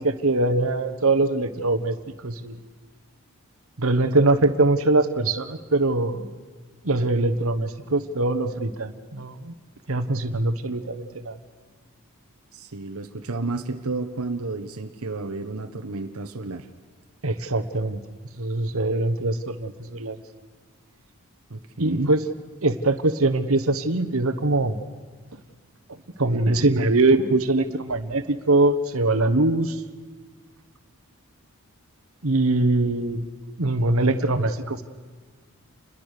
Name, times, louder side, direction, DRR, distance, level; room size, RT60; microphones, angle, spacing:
voice 1, 0.0-2.6 3.8-6.3 6.8-9.5 9.9-11.4 17.2-18.0 18.4-20.2 21.8-22.3 22.6-24.8 26.2-29.8 32.2-33.3 33.6-34.8, right 2 dB, 70° right, 8 dB, 1.3 m, -22 dB
voice 2, 12.5-16.7 21.5-22.2, right 3 dB, 90° right, 6 dB, 1.2 m, -31 dB
28.5 x 21.5 x 6.7 m, 1.5 s
head